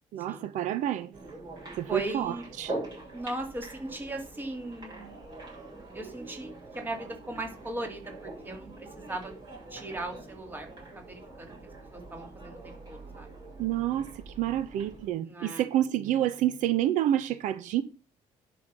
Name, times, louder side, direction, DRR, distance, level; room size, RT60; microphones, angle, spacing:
voice 1, 0.1-1.1 1.8-2.7 13.6-17.8, right 12 dB, 85° right, 1.0 m, -28 dB
sound 1, 1.1-15.1, right 2 dB, 30° right, 7.0 m, -44 dB
voice 2, 1.9-2.4 3.1-5.1 5.9-9.3 9.7-10.7 10.9-11.6 11.9-13.3 15.3-15.7, right 2 dB, 15° right, 2.5 m, -38 dB
11.0 x 5.9 x 6.9 m
cardioid pair, 170°, 13 cm